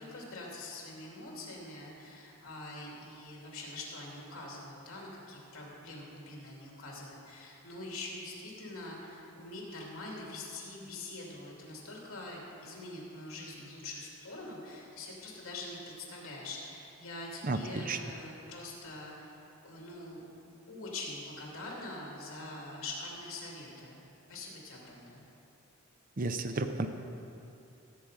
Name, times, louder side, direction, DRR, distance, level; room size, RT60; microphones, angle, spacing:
voice 1, 0.0-20.3 20.7-24.0 24.3-25.2, left 2 dB, 70° left, -3 dB, 2.7 m, -44 dB
voice 2, 17.4-18.0 26.2-26.9, right 3 dB, 40° right, 7 dB, 0.6 m, -32 dB
16.5 x 7.6 x 5.0 m, 2.9 s
head